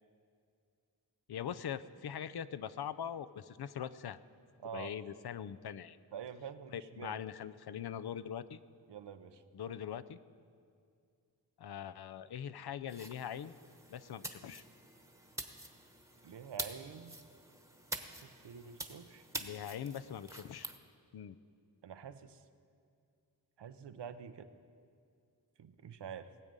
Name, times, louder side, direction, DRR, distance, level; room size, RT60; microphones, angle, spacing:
voice 1, 1.3-4.2 4.7-6.0 6.7-8.6 9.5-10.2 11.6-13.5 13.9-14.6 19.4-20.7 21.1-21.4, left 9 dB, 70° left, 13 dB, 0.5 m, -42 dB
voice 2, 4.6-4.9 6.1-7.2 8.9-9.4 16.2-17.2 18.2-19.2 21.8-22.4 23.6-24.5 25.6-26.3, right 7 dB, 85° right, 10 dB, 0.7 m, -47 dB
sound 1, 12.9-20.8, right 1 dB, 5° right, 1.1 m, -46 dB
19.5 x 7.4 x 5.3 m, 2.3 s
cardioid pair, 50°, 41 cm